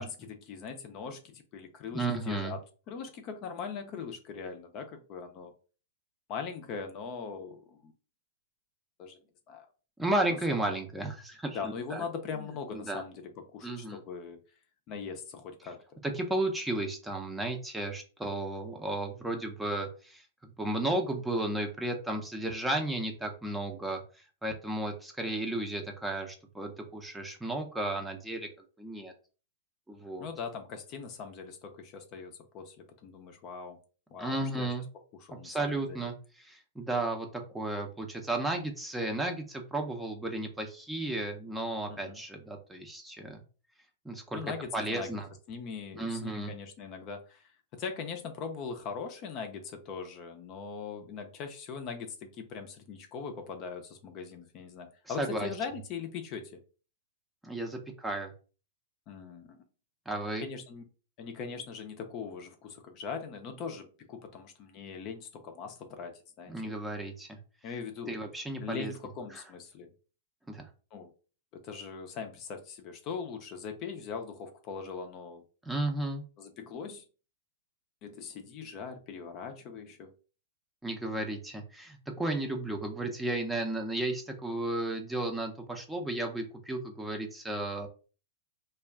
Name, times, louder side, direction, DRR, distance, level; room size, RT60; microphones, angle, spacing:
voice 1, 0.0-2.6 2.9-5.5 6.3-7.9 9.0-9.2 9.5-9.7 10.3-10.4 10.7-10.8 11.5-14.4 14.9-16.0 30.2-33.8 34.1-34.7 35.2-36.1 41.9-42.2 44.3-45.2 45.5-56.6 59.1-59.6 60.4-60.8 61.2-66.7 67.6-68.1 68.6-69.9 70.9-71.1 71.5-75.4 76.4-77.0 78.0-80.1, left 5 dB, 40° left, 6 dB, 0.5 m, -41 dB
voice 2, 1.9-2.5 10.0-12.0 12.7-13.0 13.6-14.0 16.0-24.0 24.4-28.5 28.8-29.1 29.9-30.3 34.2-34.8 35.4-43.4 44.0-44.5 44.7-45.3 45.9-46.5 55.1-55.5 57.4-58.3 60.1-60.5 66.5-67.4 68.1-68.9 69.3-69.4 70.5-70.6 75.7-76.2 80.8-87.9, right 2 dB, 5° right, 3 dB, 0.6 m, -33 dB
2.4 x 2.2 x 3.5 m, 0.36 s
hypercardioid pair, 120°, 0 cm